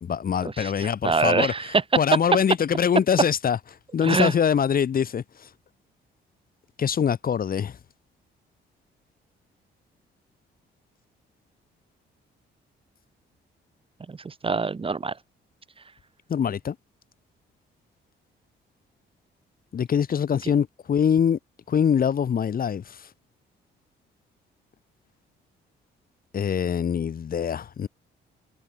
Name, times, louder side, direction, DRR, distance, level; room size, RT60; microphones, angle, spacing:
voice 1, 0.0-1.5 2.0-3.6 3.9-5.5 6.8-7.8 16.3-16.7 19.7-21.4 21.7-23.1 26.3-27.9, left 8 dB, 45° left, 1.4 m, -24 dB
voice 2, 0.6-1.8 4.0-4.3 14.1-15.1, right 4 dB, 25° right, 1.4 m, -25 dB
cardioid pair, 90°, 20 cm